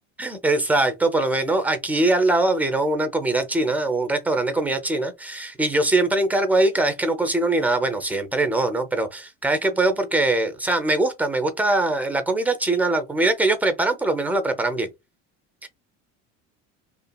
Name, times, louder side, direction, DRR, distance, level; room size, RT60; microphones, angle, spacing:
voice 1, 0.2-14.9 15.6-15.7, right 2 dB, 5° right, 0.5 m, -22 dB
2.8 x 2.5 x 2.2 m
supercardioid pair, 95°, 35 cm